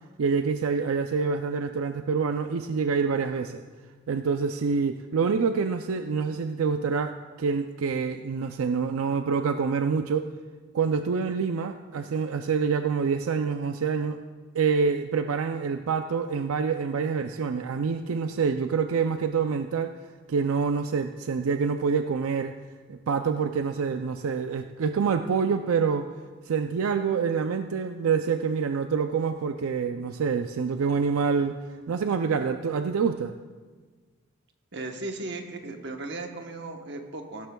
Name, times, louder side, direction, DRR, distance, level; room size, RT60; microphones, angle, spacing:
voice 1, 0.2-3.6 4.1-7.1 7.4-10.3 10.7-14.2 14.5-20.0 20.3-22.5 22.9-26.1 26.5-31.6 31.9-33.3, right 5 dB, 85° right, 7 dB, 0.4 m, -26 dB
voice 2, 34.7-37.5, right 2 dB, 55° right, 4 dB, 1.1 m, -36 dB
16.0 x 13.0 x 2.3 m, 1.4 s
head